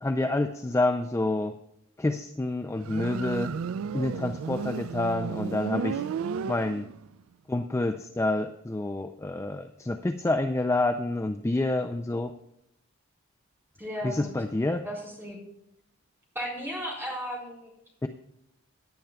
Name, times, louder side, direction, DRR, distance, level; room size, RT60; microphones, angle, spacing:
voice 1, 0.0-1.6 2.0-3.5 3.9-6.0 6.5-6.9 7.5-12.3 14.0-14.8 18.0-18.1, left 2 dB, 15° left, 7 dB, 0.3 m, -28 dB
Motorcycle, 2.8-7.1, right 6 dB, 75° right, 0.3 m, -33 dB
voice 2, 13.8-14.3 14.8-15.4 16.3-17.7, equal, 10° right, -4 dB, 4.2 m, -35 dB
17.5 x 10.5 x 2.3 m, 0.82 s
head